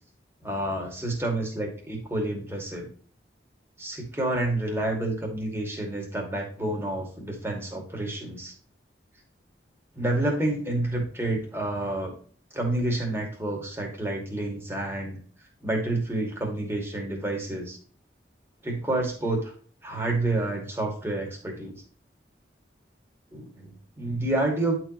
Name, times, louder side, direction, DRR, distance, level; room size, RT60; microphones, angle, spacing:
voice 1, 0.4-2.9 3.8-8.5 10.0-12.1 12.5-15.2 15.6-17.8 18.6-19.5 19.8-21.7 23.3-24.8, right 1 dB, 15° right, 0 dB, 2.4 m, -29 dB
11.0 x 4.7 x 3.2 m, 0.43 s
head